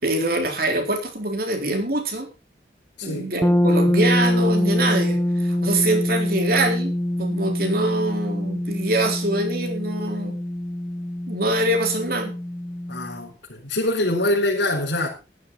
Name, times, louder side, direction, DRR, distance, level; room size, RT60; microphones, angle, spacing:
voice 1, 0.0-2.3 3.0-6.9 7.2-10.3 11.3-12.3, right 1 dB, 55° right, 3.8 m, -24 dB
voice 2, 3.0-3.3 12.9-15.1, left 1 dB, 90° left, 4.3 m, -24 dB
sound 1, 3.4-13.2, left 1 dB, 10° left, 0.6 m, -24 dB
15.0 x 12.0 x 4.0 m
head